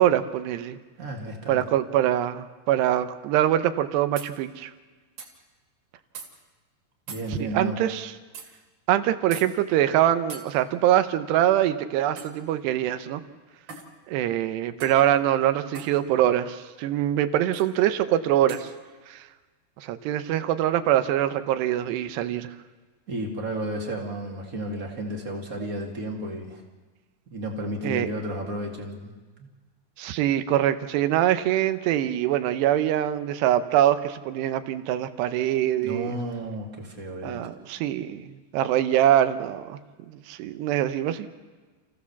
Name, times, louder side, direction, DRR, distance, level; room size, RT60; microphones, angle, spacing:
voice 1, 0.0-0.8 1.5-4.7 7.3-8.1 8.9-13.2 14.1-18.7 19.1-19.3 19.8-22.5 27.8-28.1 30.0-36.1 37.2-39.8 40.1-41.3, right 12 dB, 75° right, 11 dB, 2.9 m, -24 dB
voice 2, 1.0-1.6 7.1-7.8 23.1-26.6 27.3-29.1 29.4-29.5 35.8-37.5, right 1 dB, 30° right, 1 dB, 1.6 m, -32 dB
sound 1, 4.2-4.3 5.2-5.3 6.1-6.3 7.1-7.3 8.3-8.5 9.3-9.5 10.3-10.5 12.2-12.4 13.7-13.9 14.8-15.0 15.7-15.9 17.5-17.7 18.5-18.7, right 5 dB, 60° right, 4.0 m, -40 dB
29.0 x 15.5 x 7.1 m, 1.3 s
omnidirectional pair, 5.1 m